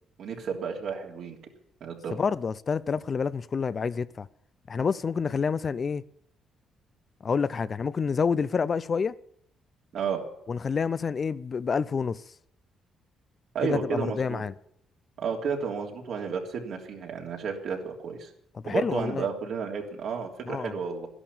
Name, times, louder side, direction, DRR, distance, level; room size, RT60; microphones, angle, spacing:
voice 1, 0.2-1.4 1.8-2.2 9.9-10.2 13.5-14.4 15.2-18.3 18.6-21.1, right 6 dB, 70° right, 3.3 m, -32 dB
voice 2, 2.1-4.3 4.7-6.0 7.2-9.2 10.5-12.2 13.6-14.5 18.6-19.3 20.5-20.7, left 5 dB, 40° left, 0.5 m, -28 dB
12.0 x 11.5 x 8.7 m
cardioid pair, 90°, 0 cm